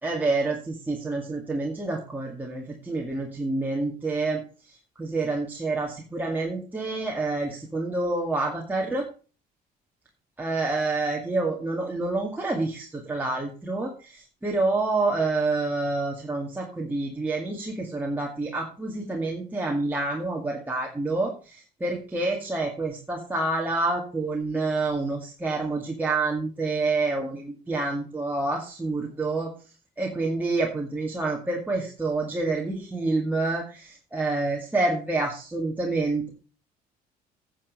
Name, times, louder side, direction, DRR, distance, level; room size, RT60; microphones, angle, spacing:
voice 1, 0.0-4.4 4.7-9.1 10.4-29.5 30.0-36.3, right 3 dB, 10° right, -2 dB, 2.2 m, -28 dB
9.8 x 7.2 x 5.4 m, 0.35 s
cardioid pair, 110°, 17 cm